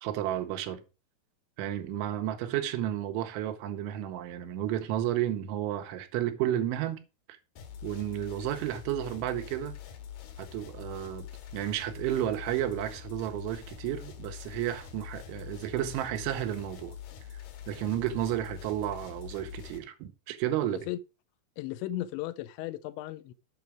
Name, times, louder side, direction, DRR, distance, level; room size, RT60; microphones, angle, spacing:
voice 1, 0.0-0.8 1.6-7.0 7.3-7.4 7.8-9.8 10.4-11.3 11.5-17.0 17.3-20.8, right 12 dB, 90° right, 3.4 m, -32 dB
sound 1, 7.6-19.8, left 9 dB, 70° left, 2.9 m, -45 dB
voice 2, 20.6-21.0 21.6-23.3, left 14 dB, 85° left, 2.8 m, -36 dB
8.3 x 5.9 x 4.9 m
omnidirectional pair, 5.3 m